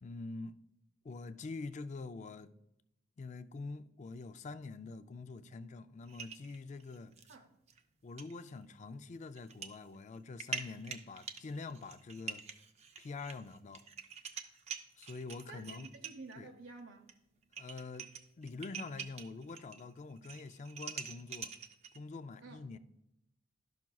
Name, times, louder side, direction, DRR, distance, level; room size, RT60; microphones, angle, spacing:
voice 1, 0.0-0.6 1.0-2.5 3.2-7.1 8.0-12.5 13.0-13.9 15.0-15.9 16.4-16.5 17.6-18.1 18.4-21.5 21.9-22.8, left 3 dB, 35° left, 0.3 m, -45 dB
sound 1, 6.1-7.4 7.7-7.8 8.2-8.3 9.4-9.8 10.1-16.3 17.1-17.2 17.4-19.8 20.1-22.0, right 5 dB, 35° right, 0.5 m, -45 dB
voice 2, 15.5-17.1 22.4-22.6, right 3 dB, 75° right, 0.7 m, -51 dB
12.0 x 5.9 x 2.3 m
head